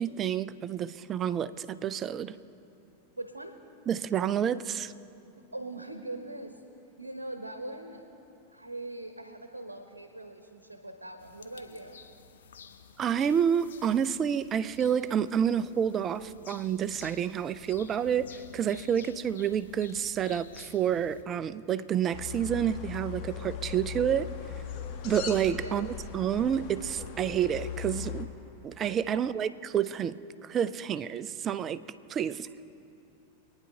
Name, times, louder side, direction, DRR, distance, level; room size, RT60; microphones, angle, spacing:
voice 1, 0.0-2.4 3.9-4.9 13.0-24.3 25.0-28.3 28.6-31.8 32.1-32.5, right 9 dB, 25° right, 15 dB, 0.4 m, -29 dB
voice 2, 3.2-3.5 5.5-6.6 7.0-8.0 8.5-12.0 25.6-25.9, right 2 dB, 80° right, 6 dB, 0.9 m, -41 dB
sound 1, 11.2-21.2, left 6 dB, 65° left, 0.8 m, -52 dB
sound 2, 22.1-28.2, left 8 dB, 40° left, 1.2 m, -39 dB
25.5 x 9.7 x 2.8 m, 2.8 s
figure-of-eight pair, 90°, 0 cm